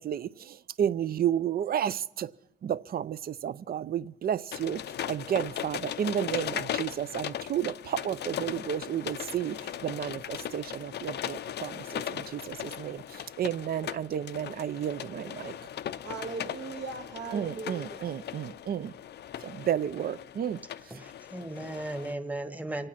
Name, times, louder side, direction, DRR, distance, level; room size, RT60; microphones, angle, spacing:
voice 1, 0.0-2.3 2.6-15.6 17.3-18.9 19.4-20.6, right 9 dB, 50° right, 17 dB, 0.5 m, -32 dB
sound 1, 4.5-22.1, left 10 dB, 60° left, 0.5 m, -38 dB
voice 2, 16.0-18.1, right 4 dB, 65° right, 5 dB, 2.0 m, -39 dB
voice 3, 20.8-22.9, right 1 dB, 5° right, 9 dB, 1.2 m, -36 dB
25.5 x 8.8 x 5.8 m, 0.79 s
cardioid pair, 90°, 20 cm